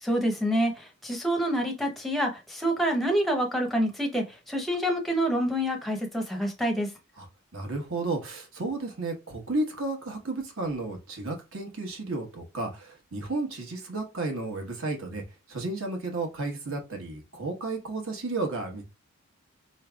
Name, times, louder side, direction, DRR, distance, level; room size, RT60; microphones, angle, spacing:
voice 1, 0.0-6.9, equal, ahead, 0.7 m, -27 dB
voice 2, 7.5-15.2 15.5-18.8, right 2 dB, 60° right, 1.2 m, -32 dB
4.9 x 3.2 x 2.3 m
head